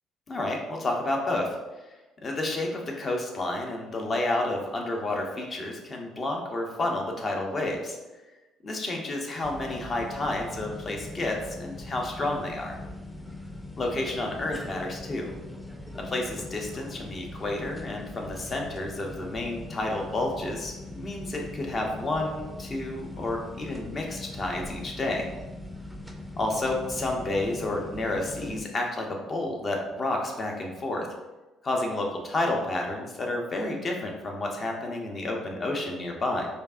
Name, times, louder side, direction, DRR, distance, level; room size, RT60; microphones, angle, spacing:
voice 1, 0.3-1.6 2.2-8.0 8.6-12.8 13.8-15.3 15.9-25.3 26.4-31.1 31.6-36.5, left 2 dB, 40° left, 1 dB, 0.8 m, -30 dB
sound 1, 9.4-28.7, left 2 dB, 5° left, 0.5 m, -41 dB
4.4 x 2.8 x 2.5 m, 1.1 s
hypercardioid pair, 50°, 0 cm